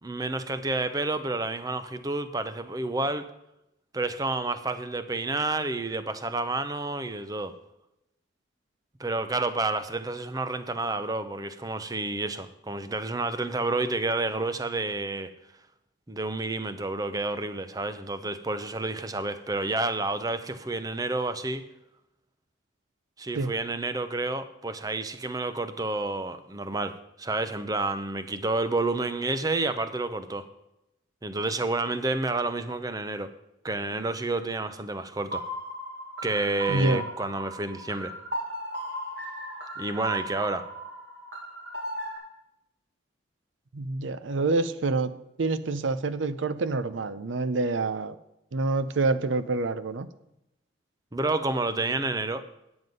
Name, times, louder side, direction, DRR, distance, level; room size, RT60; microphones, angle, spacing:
voice 1, 0.0-3.3 3.9-7.5 9.0-15.3 16.1-21.6 23.2-30.4 31.2-33.3 33.6-35.4 36.2-38.1 39.8-40.7 51.1-52.4, right 2 dB, 20° right, 10 dB, 0.6 m, -30 dB
sound 1, 35.3-42.2, right 1 dB, 60° right, 2.3 m, -36 dB
voice 2, 36.7-37.0 43.7-45.1 45.4-48.1 48.5-50.1, right 3 dB, 80° right, 13 dB, 0.6 m, -27 dB
9.4 x 7.9 x 5.3 m, 0.86 s
head